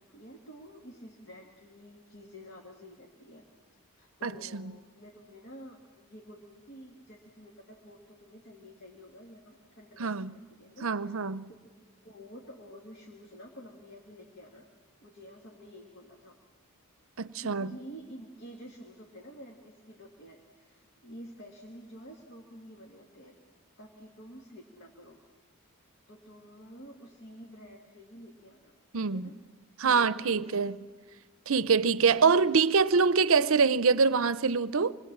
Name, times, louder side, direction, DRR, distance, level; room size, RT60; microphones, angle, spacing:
voice 1, 0.0-3.5 4.0-11.2 11.5-14.7 15.0-16.4 17.4-23.4 23.8-25.2 26.1-29.3 29.8-30.7 32.9-33.2, equal, 50° left, 1.9 m, -50 dB
voice 2, 4.2-4.6 10.0-10.3 10.8-11.5 17.2-17.7 28.9-29.3 29.8-30.8 31.5-34.9, right 5 dB, 65° right, 0.6 m, -25 dB
25.5 x 21.5 x 7.4 m
head